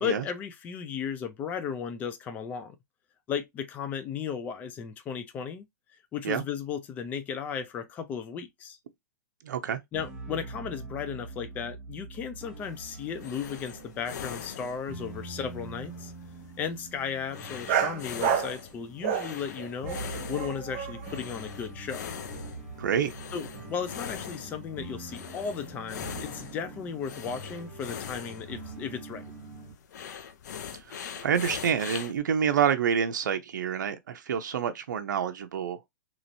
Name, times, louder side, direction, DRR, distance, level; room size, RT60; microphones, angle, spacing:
voice 1, 0.0-2.8 3.3-5.7 6.1-8.8 9.9-16.1 16.6-22.1 23.3-29.2, left 7 dB, 15° left, 0.4 m, -35 dB
voice 2, 9.4-9.8 22.8-23.1 30.7-35.9, right 8 dB, 80° right, 0.6 m, -28 dB
sound 1, 9.9-29.7, right 2 dB, 10° right, 0.8 m, -44 dB
sound 2, 12.6-32.2, left 8 dB, 65° left, 0.6 m, -42 dB
sound 3, 17.7-18.6 19.0-21.2, right 8 dB, 40° right, 0.5 m, -29 dB
3.0 x 2.9 x 2.6 m
hypercardioid pair, 160°, 10 cm